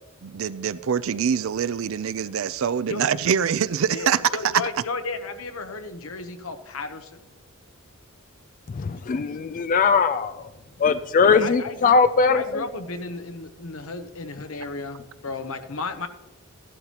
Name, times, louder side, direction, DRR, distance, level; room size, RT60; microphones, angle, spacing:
voice 1, 0.2-4.2, right 7 dB, 65° right, 16 dB, 0.4 m, -24 dB
voice 2, 3.9-7.2 11.2-12.0 12.3-16.1, left 3 dB, 70° left, 7 dB, 0.9 m, -33 dB
voice 3, 8.8-10.4 10.8-12.4, left 5 dB, 35° left, 11 dB, 0.3 m, -20 dB
14.0 x 11.5 x 2.9 m, 1.1 s
head